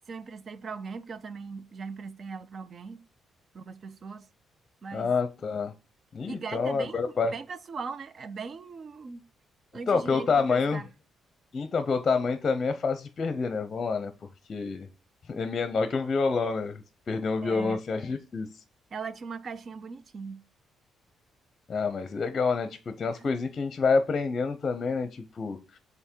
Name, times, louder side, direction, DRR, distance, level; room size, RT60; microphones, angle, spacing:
voice 1, 0.1-3.0 3.5-4.3 4.8-5.1 6.3-7.0 7.3-9.2 9.7-10.9 17.4-17.8 18.9-20.4 23.2-23.3, right 5 dB, 45° right, 0.5 m, -39 dB
voice 2, 4.9-5.7 6.1-7.3 9.9-10.8 11.5-14.1 14.5-14.9 15.3-18.5 21.7-25.8, left 4 dB, 40° left, 0.6 m, -28 dB
5.6 x 4.0 x 4.4 m
cardioid pair, 90°, 0 cm